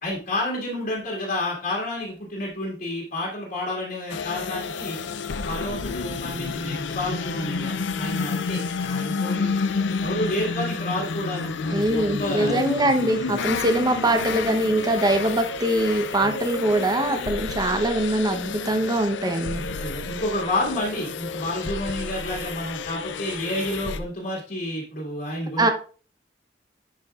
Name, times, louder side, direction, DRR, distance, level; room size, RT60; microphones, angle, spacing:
voice 1, 0.0-5.0 5.4-9.6 10.0-12.7 16.2-16.4 19.5-25.7, left 1 dB, 55° left, -4 dB, 2.1 m, -30 dB
sound 1, 4.1-24.0, left 5 dB, 75° left, 0.5 m, -30 dB
voice 2, 11.7-19.6 25.6-25.7, right 1 dB, 20° right, 6 dB, 0.8 m, -23 dB
10.0 x 4.7 x 2.4 m, 0.38 s
head